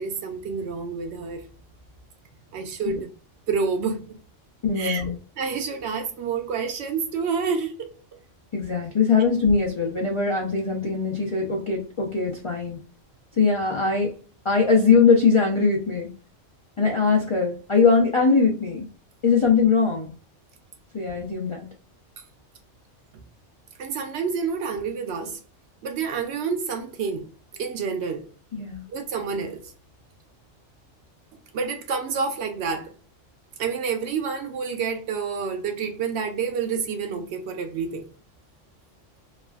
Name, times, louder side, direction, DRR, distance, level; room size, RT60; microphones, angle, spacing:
voice 1, 0.0-1.4 2.5-3.1 3.5-4.0 4.8-5.0 5.4-8.2 23.8-25.4 25.8-27.3 27.6-28.3 28.9-29.6 31.5-32.9 33.6-38.1, right 5 dB, 65° right, 0.8 m, -28 dB
voice 2, 4.6-5.2 8.5-12.8 13.4-14.1 14.4-16.1 16.8-18.9 19.2-20.1 20.9-21.7 28.5-28.8, left 5 dB, 55° left, 0.3 m, -21 dB
3.2 x 2.3 x 2.2 m
omnidirectional pair, 1.3 m